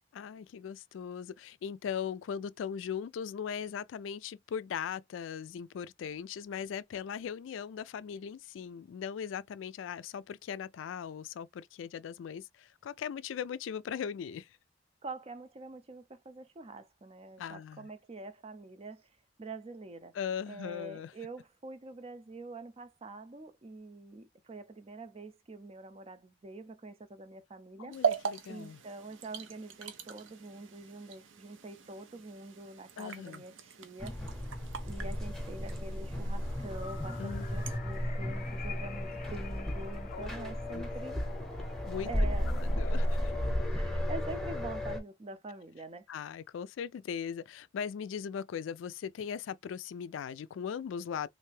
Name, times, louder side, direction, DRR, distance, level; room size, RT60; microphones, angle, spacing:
voice 1, 0.1-14.5 17.4-17.9 20.1-21.1 27.8-28.8 33.0-33.4 37.2-37.6 40.1-40.8 41.9-42.1 42.6-43.1 46.1-51.3, left 7 dB, 80° left, 0.3 m, -39 dB
voice 2, 15.0-19.0 19.4-20.1 20.5-28.0 28.5-34.1 34.8-41.3 42.0-43.0 43.7-46.0, right 2 dB, 30° right, 0.5 m, -45 dB
sound 1, 27.9-37.8, right 6 dB, 80° right, 0.6 m, -40 dB
sound 2, 34.0-45.0, equal, 5° left, 0.8 m, -34 dB
sound 3, 36.3-43.6, left 5 dB, 45° left, 0.6 m, -48 dB
3.2 x 2.6 x 3.2 m
head